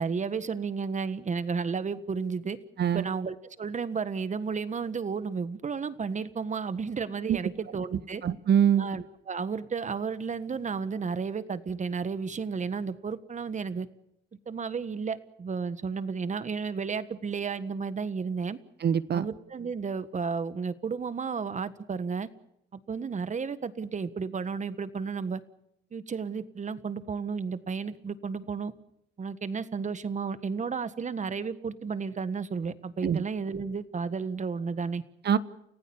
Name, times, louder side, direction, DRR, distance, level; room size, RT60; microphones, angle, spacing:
voice 1, 0.0-2.6 2.9-8.2 8.7-13.9 14.5-18.6 19.1-22.3 22.7-25.4 25.9-28.7 29.2-35.0, right 5 dB, 35° right, 14 dB, 1.6 m, -32 dB
voice 2, 8.2-8.8 18.8-19.2 33.0-33.2 35.2-35.4, right 8 dB, 55° right, 15 dB, 1.2 m, -23 dB
29.5 x 16.0 x 7.2 m, 0.77 s
cardioid pair, 90°, 20 cm